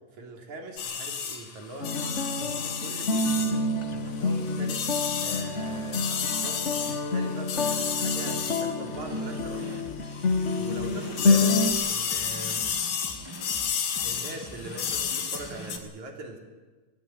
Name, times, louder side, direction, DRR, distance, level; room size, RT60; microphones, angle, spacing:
voice 1, 0.1-1.9 2.4-3.5 3.9-4.9 5.2-9.8 10.6-11.6 11.9-12.7 14.0-16.4, right 2 dB, 60° right, 2 dB, 4.8 m, -41 dB
sound 1, 0.8-9.8 10.1-15.8, left 7 dB, 80° left, 3.8 m, -32 dB
sound 2, 1.8-11.7, left 3 dB, 55° left, 0.7 m, -28 dB
sound 3, 8.9-15.8, right 1 dB, 15° right, 1.0 m, -44 dB
22.0 x 18.5 x 9.1 m, 1.3 s
omnidirectional pair, 3.8 m